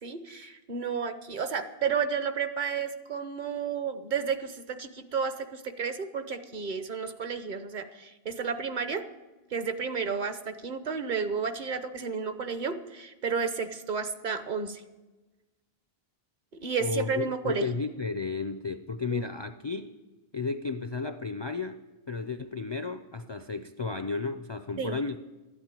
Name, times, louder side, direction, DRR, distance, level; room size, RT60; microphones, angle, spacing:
voice 1, 0.0-9.0 9.5-14.8 16.6-17.7 19.1-19.2 24.8-25.0, right 6 dB, 50° right, 10 dB, 1.0 m, -32 dB
voice 2, 16.8-19.9 20.3-21.8 22.1-25.2, left 4 dB, 40° left, 9 dB, 0.4 m, -33 dB
13.0 x 8.8 x 8.9 m, 1.1 s
omnidirectional pair, 1.1 m